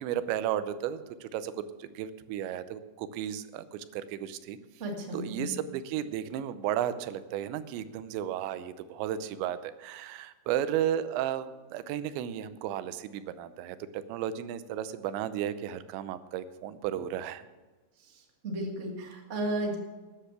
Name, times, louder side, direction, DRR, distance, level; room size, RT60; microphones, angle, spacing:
voice 1, 0.0-4.6 5.1-17.5, right 10 dB, 90° right, 13 dB, 3.0 m, -34 dB
voice 2, 4.8-5.6 18.0-19.8, right 1 dB, 70° right, 1 dB, 0.6 m, -34 dB
13.5 x 9.9 x 5.9 m, 1.2 s
omnidirectional pair, 5.0 m